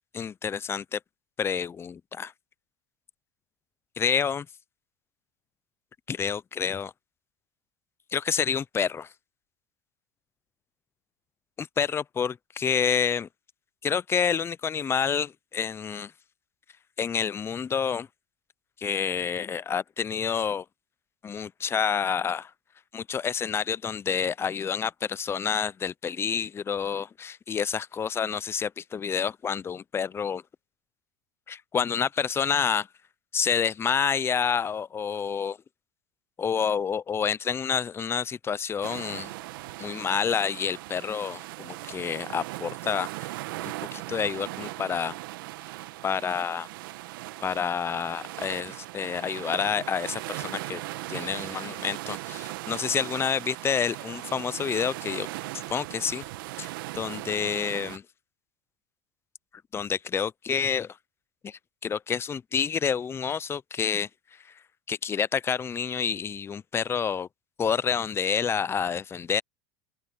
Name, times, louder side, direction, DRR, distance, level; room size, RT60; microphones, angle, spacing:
voice 1, 0.1-1.0 1.4-2.3 4.0-4.5 6.1-6.9 8.1-9.1 11.6-13.3 13.8-16.1 17.0-18.1 18.8-20.6 21.2-22.5 22.9-30.4 31.5-32.9 33.3-35.6 36.4-39.3 39.8-43.3 43.6-45.2 46.0-46.7 47.4-50.8 51.1-55.3 55.7-56.2 56.6-56.7 56.9-58.0 59.7-61.0 61.4-64.1 64.9-67.3 67.6-69.4, left 7 dB, 20° left, 0.5 m, -28 dB
sound 1, 38.8-58.0, right 18 dB, 80° right, 1.4 m, -38 dB
open air
supercardioid pair, 110°, 11 cm